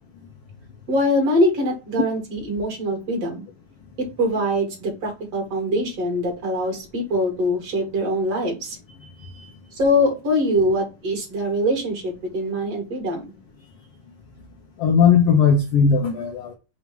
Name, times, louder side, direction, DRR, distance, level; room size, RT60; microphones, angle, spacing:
voice 1, 0.9-3.5 4.0-8.8 9.7-13.3, equal, 50° right, 3.1 m, -23 dB
voice 2, 14.8-16.5, left 6 dB, 75° left, 1.4 m, -18 dB
6.2 x 3.1 x 5.2 m
omnidirectional pair, 3.8 m